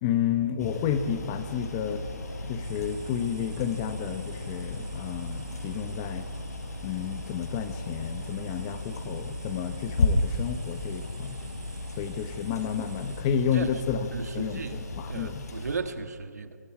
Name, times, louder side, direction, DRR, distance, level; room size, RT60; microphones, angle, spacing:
voice 1, 0.0-2.0 2.5-6.3 6.8-11.4 12.0-14.1 14.3-15.5, left 8 dB, 15° left, 9 dB, 0.9 m, -31 dB
sound 1, 0.6-15.8, left 2 dB, 65° left, 5.1 m, -34 dB
sound 2, 2.6-13.2, right 12 dB, 25° right, 1.4 m, -53 dB
voice 2, 14.1-16.6, right 5 dB, 70° right, 8 dB, 1.9 m, -35 dB
27.0 x 24.0 x 4.9 m, 2.1 s
hypercardioid pair, 170°, 9 cm